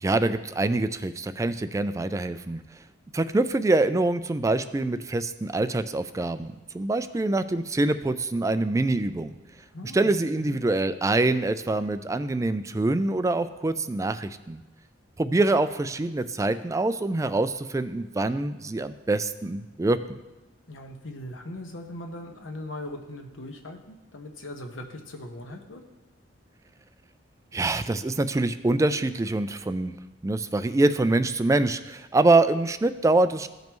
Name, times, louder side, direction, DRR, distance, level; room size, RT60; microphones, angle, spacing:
voice 1, 0.0-2.6 3.1-9.3 9.9-14.6 15.2-20.2 27.5-30.0 30.2-33.5, right 2 dB, 15° right, 12 dB, 0.3 m, -25 dB
voice 2, 9.6-10.6 20.7-25.8, left 1 dB, 80° left, 4 dB, 1.1 m, -40 dB
15.5 x 5.2 x 3.1 m, 1.1 s
head